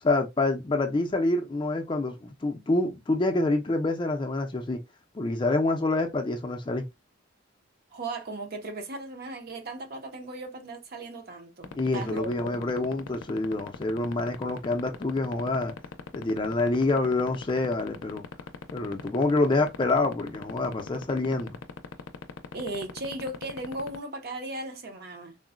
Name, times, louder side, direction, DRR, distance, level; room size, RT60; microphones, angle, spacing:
voice 1, 0.0-4.8 5.1-6.8 11.7-15.7 16.1-18.2 18.7-21.6, left 2 dB, 25° left, 0.4 m, -27 dB
voice 2, 7.9-12.6 22.5-25.4, right 2 dB, 50° right, 0.6 m, -37 dB
sound 1, 11.6-24.0, left 6 dB, 80° left, 0.5 m, -37 dB
3.7 x 2.0 x 2.4 m
head